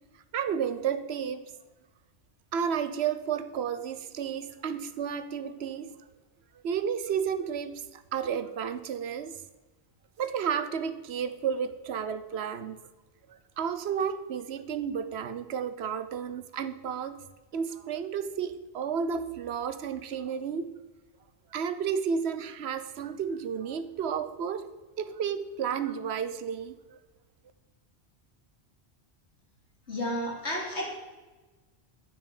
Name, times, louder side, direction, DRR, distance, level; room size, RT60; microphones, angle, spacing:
voice 1, 0.3-1.5 2.5-5.9 6.5-9.4 10.2-12.8 13.3-17.2 17.5-20.7 21.5-24.7 25.0-27.0, right 7 dB, 70° right, 12 dB, 1.1 m, -32 dB
voice 2, 29.9-30.9, left 1 dB, 75° left, -1 dB, 3.7 m, -32 dB
11.0 x 9.9 x 7.1 m, 1.2 s
omnidirectional pair, 1.1 m